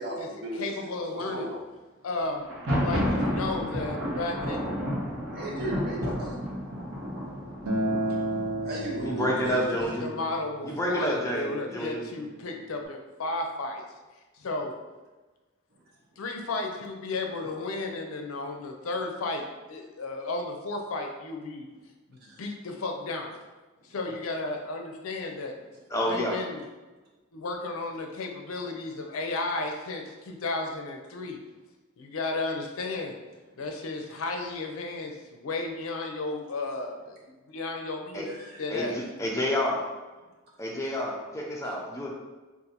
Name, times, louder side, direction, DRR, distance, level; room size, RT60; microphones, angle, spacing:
voice 1, 0.0-0.7 1.3-1.6 5.3-6.3 8.6-9.6 22.3-22.4 38.3-38.6, right 1 dB, 45° right, -3 dB, 0.7 m, -35 dB
voice 2, 0.5-1.5 2.0-2.4 2.8-4.6 10.0-13.8 14.4-14.7 16.2-21.7 22.1-23.3 23.9-25.5 26.1-26.6 27.3-31.4 32.0-33.1 33.6-37.2 37.5-38.3 38.6-39.0, left 2 dB, 80° left, 3 dB, 0.5 m, -33 dB
Thunder, 2.4-10.2, equal, 65° right, 1.0 m, -32 dB
Acoustic guitar, 7.7-12.9, right 1 dB, 90° right, 0.6 m, -34 dB
voice 3, 9.0-10.0 10.6-12.0 25.9-26.3 38.1-38.3 38.7-39.8 40.6-42.1, equal, 15° left, -2 dB, 0.5 m, -29 dB
2.6 x 2.5 x 4.0 m, 1.2 s
head